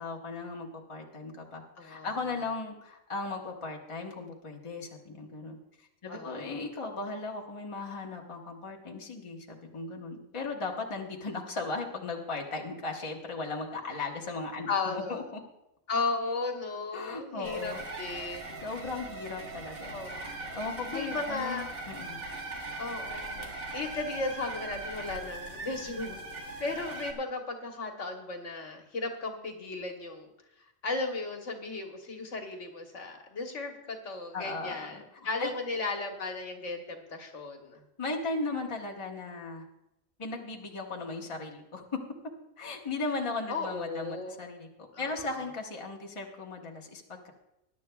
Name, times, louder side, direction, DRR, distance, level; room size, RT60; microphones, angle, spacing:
voice 1, 0.0-15.4 16.9-17.8 18.1-22.2 34.3-35.5 38.0-39.6 40.2-41.8 42.6-47.3, left 3 dB, 25° left, 0 dB, 1.2 m, -37 dB
voice 2, 1.8-2.2 6.1-6.6 14.7-15.2 15.9-18.6 19.9-20.6 20.9-21.7 22.2-22.3 22.8-26.2 26.6-30.3 30.8-37.8 43.5-44.4 44.9-45.3, left 3 dB, 60° left, 3 dB, 1.5 m, -35 dB
sound 1, 17.4-27.1, right 2 dB, 75° right, 2.1 m, -40 dB
21.0 x 11.0 x 2.3 m, 0.88 s
omnidirectional pair, 1.4 m